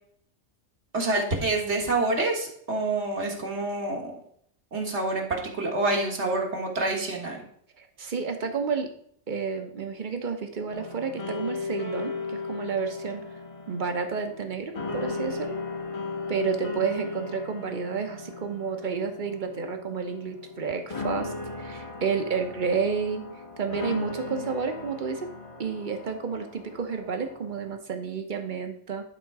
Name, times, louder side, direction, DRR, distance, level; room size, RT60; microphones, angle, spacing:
voice 1, 0.9-4.1 4.7-7.4 24.3-24.4, right 2 dB, 65° right, 0 dB, 1.8 m, -27 dB
voice 2, 7.8-8.9 9.3-13.2 13.7-15.6 16.3-23.2 23.6-25.3 25.6-29.1, right 5 dB, 45° right, 6 dB, 1.0 m, -31 dB
sound 1, 10.7-27.8, left 3 dB, 30° left, 0.9 m, -36 dB
11.0 x 3.7 x 4.8 m, 0.66 s
omnidirectional pair, 1.3 m